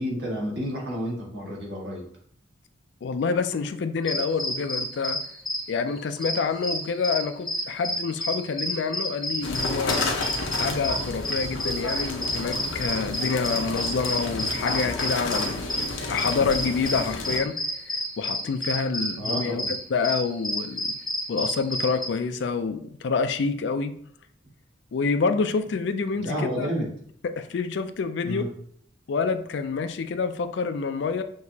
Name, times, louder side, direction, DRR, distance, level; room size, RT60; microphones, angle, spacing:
voice 1, 0.0-2.0 4.1-4.2 19.2-19.7 26.1-26.9 28.2-28.5, equal, 60° right, -4 dB, 1.5 m, -30 dB
voice 2, 3.0-5.2 5.7-10.0 10.6-15.7 16.1-17.6 17.9-20.9 21.3-23.9 24.9-26.7 27.4-28.5 29.1-31.2, left 5 dB, 60° left, 9 dB, 0.4 m, -27 dB
sound 1, 4.1-22.1, equal, ahead, 0.6 m, -30 dB
sound 2, 9.4-17.4, left 2 dB, 90° left, 0.7 m, -31 dB
6.1 x 2.8 x 2.8 m, 0.63 s
head